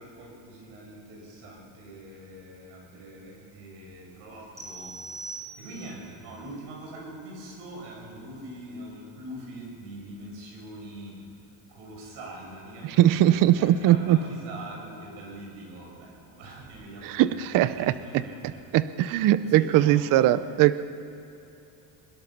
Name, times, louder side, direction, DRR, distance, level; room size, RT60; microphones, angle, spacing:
voice 1, 0.0-11.2 11.7-18.6 19.4-20.3, right 1 dB, 70° right, -2 dB, 6.9 m, -43 dB
sound 1, 4.6-6.1, right 3 dB, 5° right, 2.9 m, -41 dB
voice 2, 13.0-14.2 17.0-17.7 18.4-20.8, right 13 dB, 45° right, 14 dB, 0.6 m, -20 dB
22.5 x 21.5 x 5.9 m, 3.0 s
cardioid pair, 175°, 45 cm